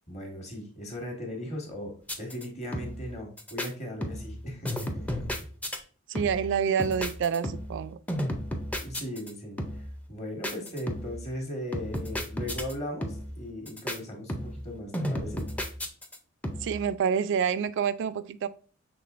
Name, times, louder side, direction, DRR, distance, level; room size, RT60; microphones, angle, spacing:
voice 1, 0.1-5.3 8.8-9.8 10.1-15.4, left 1 dB, 30° left, 1.3 m, -38 dB
sound 1, 2.0-2.4 2.7-3.1 3.4-3.7 4.0-4.4 4.6-5.8 6.1-6.5 6.8-7.8 8.1-9.3 9.6-10.0 10.4-11.2 11.7-12.7 13.0-13.4 13.7-14.0 14.3-14.7 14.9-16.2 16.4-16.8, equal, 5° left, 0.5 m, -33 dB
voice 2, 6.1-8.0 16.6-18.5, right 7 dB, 60° right, 0.3 m, -27 dB
5.9 x 3.5 x 2.4 m
head